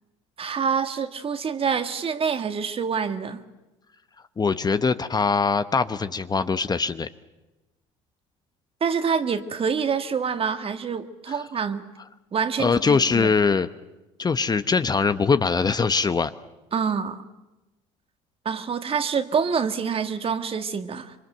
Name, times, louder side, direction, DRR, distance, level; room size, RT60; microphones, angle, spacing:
voice 1, 0.4-3.4 8.8-11.8 12.3-13.3 16.7-17.3 18.5-21.1, right 6 dB, 40° right, 9 dB, 1.8 m, -26 dB
voice 2, 4.4-7.1 11.3-11.4 12.6-13.7 14.2-16.3, left 5 dB, 25° left, 12 dB, 1.0 m, -22 dB
26.0 x 23.0 x 8.0 m, 1.0 s
hypercardioid pair, 70°, 15 cm